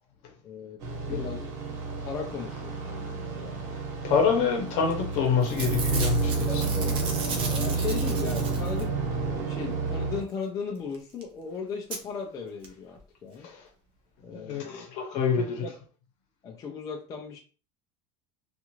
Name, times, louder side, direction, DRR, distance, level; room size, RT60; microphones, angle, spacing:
voice 1, 0.4-1.5 2.0-3.6 6.5-7.0 7.4-9.0 9.3-13.5 14.2-14.9 15.4-15.7 16.4-17.4, left 6 dB, 25° left, 0.4 m, -37 dB
sound 1, 0.8-10.2, right 4 dB, 60° right, 1.1 m, -30 dB
voice 2, 4.0-6.7 13.4-13.7 14.3-15.6, left 6 dB, 55° left, 0.9 m, -26 dB
Packing tape duct tape / Tearing, 4.9-5.2 5.4-9.0 10.9-11.0 11.2-11.3 11.9-12.0 12.6-12.7 13.0-13.1, right 4 dB, 40° right, 0.6 m, -36 dB
2.5 x 2.4 x 2.9 m
cardioid pair, 170°, 14 cm